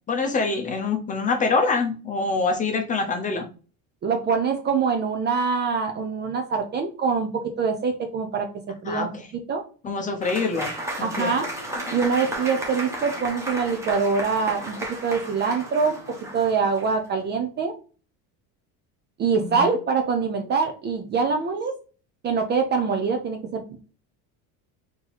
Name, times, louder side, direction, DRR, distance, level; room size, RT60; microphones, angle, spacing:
voice 1, 0.1-3.5 8.8-9.1 9.8-10.7 11.0-11.4 19.4-19.7, left 4 dB, 20° left, 4 dB, 0.7 m, -25 dB
voice 2, 4.0-7.3 7.6-8.5 8.8-9.1 9.5-9.6 11.0-11.5 11.9-14.8 15.0-16.0 16.3-17.7 19.2-21.7 22.2-23.6, right 5 dB, 25° right, 5 dB, 0.5 m, -24 dB
Applause / Crowd, 10.2-17.0, right 1 dB, 5° right, 1.0 m, -34 dB
4.3 x 2.8 x 4.1 m, 0.36 s
cardioid pair, 165°, 39 cm